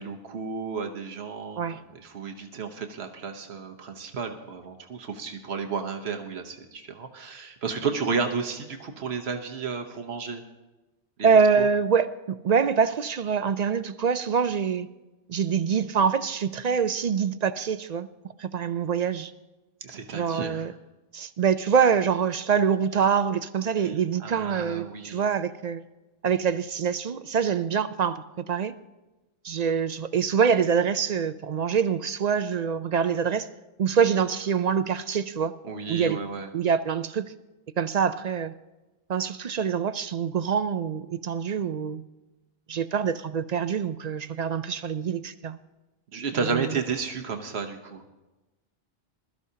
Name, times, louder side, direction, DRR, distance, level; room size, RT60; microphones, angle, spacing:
voice 1, 0.0-1.6 1.9-10.4 11.2-11.3 11.6-11.7 19.8-20.7 23.8-23.9 24.2-25.2 35.6-36.5 46.1-48.0, right 5 dB, 90° right, 1.3 m, -32 dB
voice 2, 11.2-14.9 15.3-18.1 18.4-19.3 20.1-20.7 21.1-25.8 26.2-28.7 29.4-33.5 33.8-35.5 35.9-36.2 36.5-37.3 37.8-38.5 39.1-42.0 42.7-45.6 46.4-46.8, right 6 dB, 55° right, 0.5 m, -25 dB
21.0 x 13.0 x 2.8 m
omnidirectional pair, 1.0 m